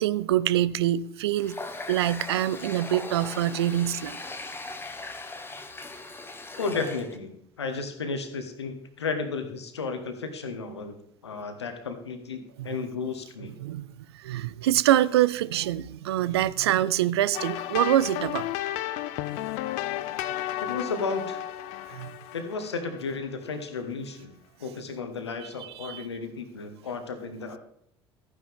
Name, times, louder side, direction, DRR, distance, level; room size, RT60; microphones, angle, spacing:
voice 1, 0.0-1.6 1.9-4.2 12.6-12.7 13.6-18.5 21.9-22.1 25.4-25.5 25.8-26.1, right 13 dB, 70° right, 0.4 m, -25 dB
Water tap faucet, 1.4-7.2, left 2 dB, 15° left, 1.2 m, -39 dB
voice 2, 6.6-11.0 11.2-12.4 12.6-13.5 20.6-21.4 22.3-24.3 24.6-27.6, left 4 dB, 80° left, 1.3 m, -33 dB
sound 1, 17.3-23.2, left 13 dB, 55° left, 0.6 m, -33 dB
13.5 x 9.8 x 3.5 m
figure-of-eight pair, 60°, 14 cm